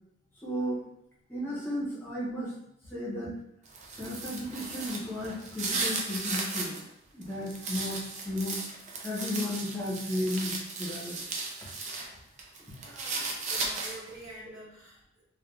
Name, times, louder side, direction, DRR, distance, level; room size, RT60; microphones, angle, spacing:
voice 1, 0.4-0.8 1.3-2.5 2.9-3.3 3.9-6.8 7.1-8.6 9.0-11.2 12.7-12.8, left 1 dB, 10° left, -7 dB, 0.7 m, -34 dB
sound 1, 3.6-6.8 7.2-12.1 12.4-14.2, right 3 dB, 40° right, 0.4 m, -35 dB
voice 2, 12.8-15.2, right 1 dB, 70° right, -7 dB, 1.1 m, -47 dB
3.2 x 2.2 x 2.3 m, 0.77 s
head